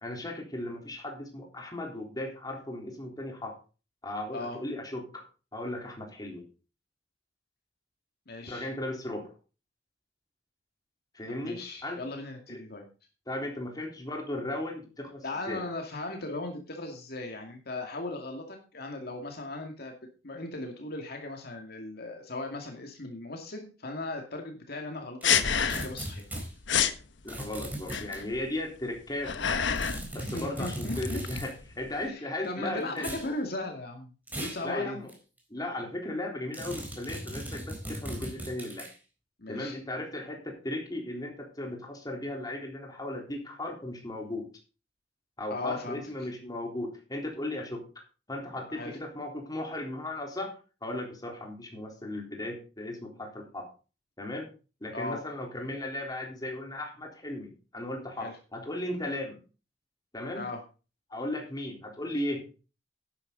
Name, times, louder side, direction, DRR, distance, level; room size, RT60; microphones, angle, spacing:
voice 1, 0.0-3.6 4.0-5.2 5.5-6.4 8.5-9.3 11.1-12.0 12.5-12.6 13.3-15.6 27.2-29.7 30.1-33.2 34.6-35.1 35.5-38.9 39.5-44.5 45.4-47.8 48.3-50.5 50.8-53.7 54.2-54.5 54.8-59.4 60.1-60.4 61.1-62.4, left 1 dB, 20° left, 1 dB, 3.7 m, -36 dB
voice 2, 8.3-8.7 11.4-12.8 15.2-19.9 20.2-26.2 30.2-31.2 32.1-35.0 39.4-39.8 45.5-46.0 48.7-49.0 54.9-55.2 58.2-58.3 60.3-60.6, left 2 dB, 60° left, 3 dB, 2.2 m, -37 dB
sound 1, 25.2-26.1 26.3-26.4 26.7-27.0 27.9-28.4 29.0-30.1 30.4-32.0, left 7 dB, 85° left, 1.1 m, -28 dB
sound 2, 25.2-26.5 27.3-28.2 29.7-31.5 33.0-33.3 34.3-34.6 35.1-35.2 36.5-38.9, right 1 dB, 10° right, 4.0 m, -38 dB
12.0 x 10.0 x 3.9 m, 0.33 s
head